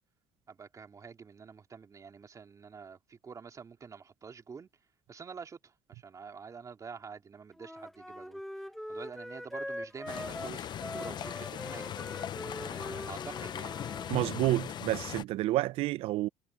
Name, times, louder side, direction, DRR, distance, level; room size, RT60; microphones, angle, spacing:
voice 1, 0.5-4.7 5.1-8.4 8.9-12.0 12.6-13.8, right 5 dB, 35° right, 3.0 m, -47 dB
Wind instrument woodwind instrument, 7.6-14.1, equal, ahead, 1.1 m, -42 dB
sound 1, 10.1-15.2, left 10 dB, 50° left, 0.6 m, -39 dB
voice 2, 14.1-16.3, right 16 dB, 80° right, 0.7 m, -29 dB
cardioid pair, 95°, 10 cm